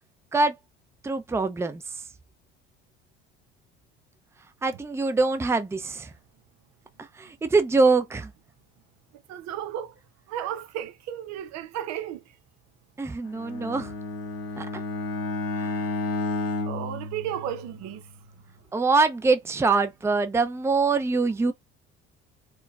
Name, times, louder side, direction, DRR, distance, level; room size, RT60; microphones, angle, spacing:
voice 1, 1.0-1.8 4.6-6.1 7.2-8.3 13.0-13.9 14.6-14.7 15.6-15.7 18.7-21.5, right 3 dB, 10° right, 0.5 m, -24 dB
voice 2, 9.3-10.0 10.3-12.2 16.6-18.0, right 10 dB, 65° right, 0.7 m, -33 dB
Bowed string instrument, 13.3-17.9, left 2 dB, 55° left, 0.9 m, -31 dB
4.5 x 2.1 x 2.4 m
supercardioid pair, 75°, 29 cm